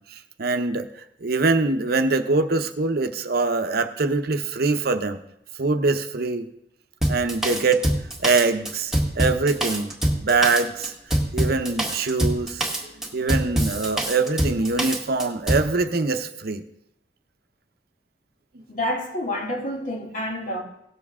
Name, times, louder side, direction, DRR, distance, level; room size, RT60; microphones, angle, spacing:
voice 1, 0.1-0.9 1.2-5.2 5.6-6.5 7.1-7.9 8.2-10.9 11.3-16.6, right 3 dB, 60° right, 0.8 m, -23 dB
Drum kit, 7.0-15.7, right 1 dB, 5° right, 1.7 m, -24 dB
voice 2, 18.7-20.6, left 1 dB, 50° left, 2.4 m, -28 dB
17.5 x 7.2 x 3.6 m
head